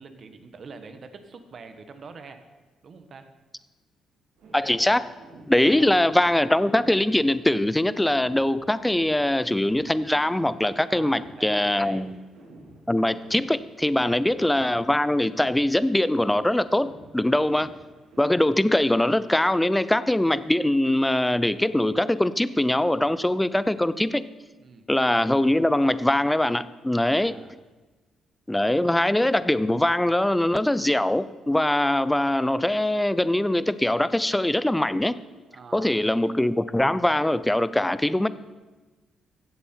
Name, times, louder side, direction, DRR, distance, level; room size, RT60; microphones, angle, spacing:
voice 1, 0.0-2.4 2.8-3.3 5.5-5.9 10.9-12.0 14.0-14.2 24.6-24.9 27.0-27.6 35.5-36.0, right 4 dB, 50° right, 8 dB, 1.2 m, -44 dB
sound 1, 4.4-18.2, right 2 dB, 80° right, 3.3 m, -50 dB
voice 2, 4.5-5.1 5.5-12.2 12.9-17.7 18.2-24.2 24.9-27.4 28.5-35.1 35.7-38.3, left 1 dB, 10° left, 15 dB, 0.5 m, -22 dB
16.0 x 7.5 x 4.5 m, 1.3 s
cardioid pair, 90°, 0 cm